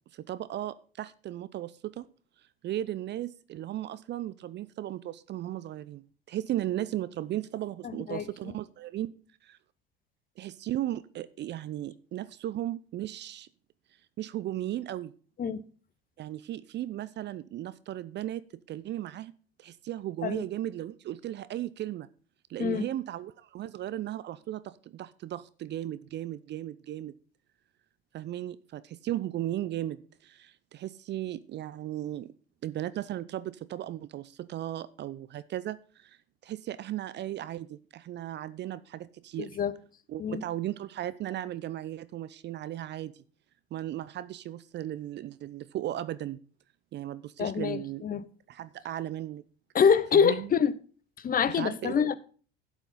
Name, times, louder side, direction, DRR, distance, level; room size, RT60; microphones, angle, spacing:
voice 1, 0.1-2.1 2.6-9.1 9.4-9.6 10.4-13.5 14.2-15.1 16.2-19.3 19.6-22.1 22.5-27.1 28.1-32.3 32.6-36.2 36.4-39.6 40.1-43.2 43.7-46.4 46.9-48.0 48.5-49.4 50.1-50.5 51.5-52.1, right 13 dB, 35° right, 0.6 m, -36 dB
voice 2, 7.8-8.3 15.4-15.6 20.2-20.4 22.6-22.9 39.4-39.7 40.2-40.4 47.4-48.2 49.7-50.7 51.2-52.2, left 7 dB, 30° left, 0.9 m, -26 dB
12.0 x 8.2 x 3.8 m
hypercardioid pair, 75°, 31 cm